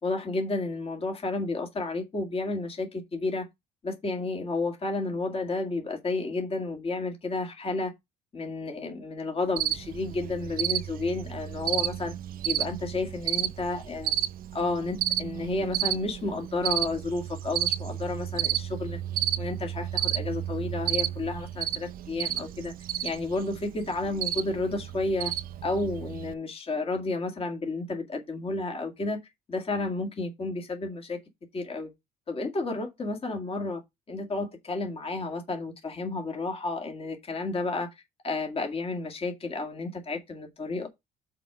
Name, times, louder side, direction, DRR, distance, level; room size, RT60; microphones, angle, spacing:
voice 1, 0.0-3.5 3.8-7.9 8.3-12.1 12.4-14.2 14.5-19.0 19.4-22.7 23.0-25.3 25.6-29.2 29.5-31.2 31.5-31.9 32.3-33.8 34.1-37.9 38.2-40.9, left 3 dB, 35° left, 2.1 m, -31 dB
Cricket, 9.6-26.3, right 12 dB, 60° right, 0.6 m, -32 dB
5.9 x 4.7 x 6.0 m
cardioid pair, 110°, 17 cm